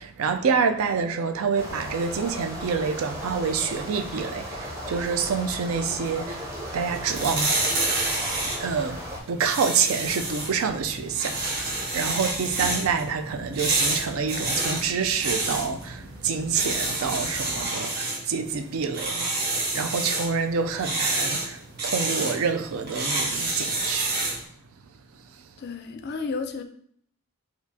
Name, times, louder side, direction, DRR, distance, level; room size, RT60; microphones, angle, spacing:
voice 1, 0.0-7.6 8.4-19.3 19.7-24.2, right 5 dB, 70° right, 0.4 m, -27 dB
sound 1, 1.6-9.2, equal, 15° right, 0.6 m, -36 dB
sound 2, 6.8-24.5, right 2 dB, 45° right, 0.8 m, -29 dB
sound 3, 9.9-17.7, equal, 85° right, 1.1 m, -44 dB
voice 2, 25.6-26.6, left 4 dB, 45° left, 0.3 m, -32 dB
4.4 x 2.4 x 2.7 m
head